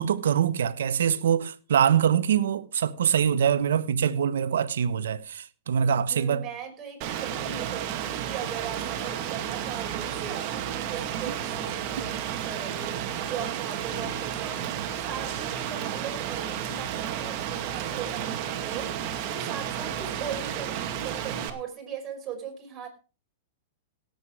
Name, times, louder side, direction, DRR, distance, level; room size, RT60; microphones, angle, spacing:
voice 1, 0.0-6.5, right 8 dB, 80° right, 1.1 m, -24 dB
voice 2, 6.1-18.9 19.2-22.9, right 7 dB, 30° right, 5.3 m, -39 dB
Rain, 7.0-21.5, right 10 dB, 45° right, 2.2 m, -32 dB
18.0 x 8.2 x 4.7 m
hypercardioid pair, 130°, 0 cm